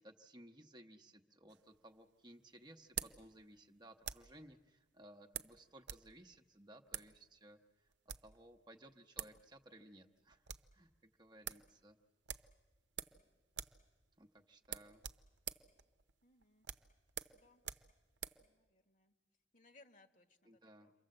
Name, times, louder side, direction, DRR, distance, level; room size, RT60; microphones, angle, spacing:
voice 1, 0.0-7.9 8.2-12.0 14.2-15.0 20.4-20.9, right 1 dB, 25° right, 5 dB, 1.0 m, -60 dB
sound 1, 1.5-4.4 5.3-6.1 6.3-6.4 6.9-7.1 7.9-8.4 8.9-9.0 9.2-9.4 9.7-9.8 10.1-10.7 11.1-11.2 11.4-11.7 12.3-13.2 13.5-13.8 14.1-14.2 14.6-18.4, right 10 dB, 70° right, 0.8 m, -47 dB
voice 2, 16.2-16.7 17.3-17.6 18.4-19.1 19.5-20.9, left 3 dB, 45° left, 7 dB, 1.6 m, -67 dB
28.5 x 23.5 x 7.7 m, 1.2 s
head